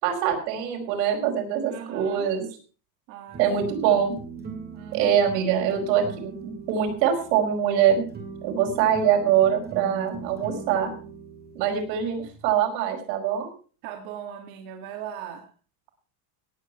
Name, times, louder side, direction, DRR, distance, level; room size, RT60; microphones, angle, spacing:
voice 1, 0.0-2.5 3.4-4.2 4.9-8.0 8.4-10.9 11.6-13.5, right 9 dB, 85° right, 2 dB, 5.3 m, -23 dB
voice 2, 1.6-2.3 3.1-3.6 4.7-5.2 13.8-15.5, right 9 dB, 55° right, 3 dB, 2.1 m, -39 dB
sound 1, 3.3-12.6, right 4 dB, 20° right, 2.1 m, -40 dB
18.0 x 8.4 x 5.7 m, 0.40 s
cardioid pair, 175°, 48 cm